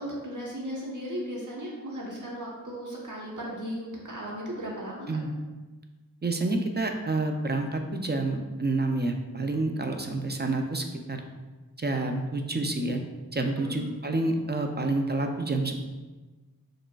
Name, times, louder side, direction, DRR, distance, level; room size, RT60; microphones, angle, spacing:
voice 1, 0.0-5.1 13.6-13.9, equal, 55° right, -4 dB, 1.1 m, -36 dB
voice 2, 6.2-11.3 11.8-13.0 13.3-15.8, right 2 dB, 30° right, 4 dB, 0.4 m, -28 dB
4.9 x 3.1 x 2.3 m, 1.2 s
wide cardioid pair, 50°, 36 cm